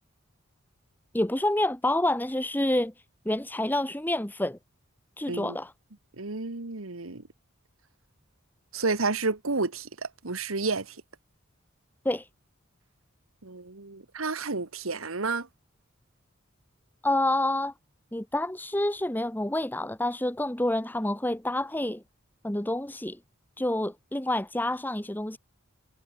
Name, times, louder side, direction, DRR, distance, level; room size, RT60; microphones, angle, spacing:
voice 1, 1.1-2.9 3.2-4.6 5.2-5.7 12.0-12.3 17.0-17.7 18.1-22.0 22.4-23.2 23.6-25.4, left 1 dB, 10° left, 1.3 m, -28 dB
voice 2, 6.2-7.2 8.7-11.0 13.4-15.5, right 3 dB, 85° right, 1.7 m, -31 dB
head